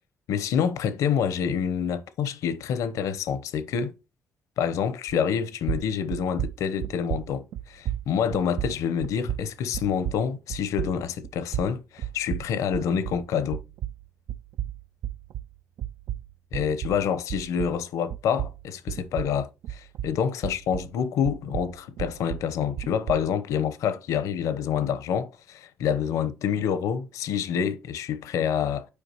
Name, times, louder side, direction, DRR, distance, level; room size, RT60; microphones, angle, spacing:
voice 1, 0.3-3.9 4.6-13.6 16.5-28.9, left 7 dB, 80° left, 0.8 m, -27 dB
sound 1, 5.1-5.4 5.6-13.3 13.5-17.8 18.1-21.0 21.2-23.3, right 11 dB, 70° right, 0.5 m, -34 dB
8.5 x 4.7 x 2.9 m
cardioid pair, 85°, 5 cm